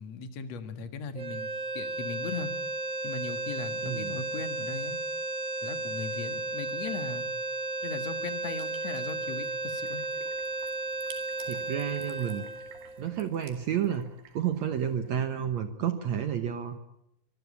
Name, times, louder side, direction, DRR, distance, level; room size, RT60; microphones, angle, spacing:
voice 1, 0.0-2.5 3.0-5.0 5.6-7.3 7.8-10.0, left 5 dB, 50° left, 8 dB, 2.5 m, -38 dB
sound 1, 1.1-13.4, right 2 dB, 35° right, 2.5 m, -34 dB
voice 2, 3.8-4.2 11.5-12.4 13.0-16.8, right 9 dB, 70° right, 8 dB, 1.8 m, -31 dB
sound 2, 8.6-15.2, right 7 dB, 85° right, 4.3 m, -54 dB
24.5 x 22.0 x 8.4 m, 0.85 s
omnidirectional pair, 4.5 m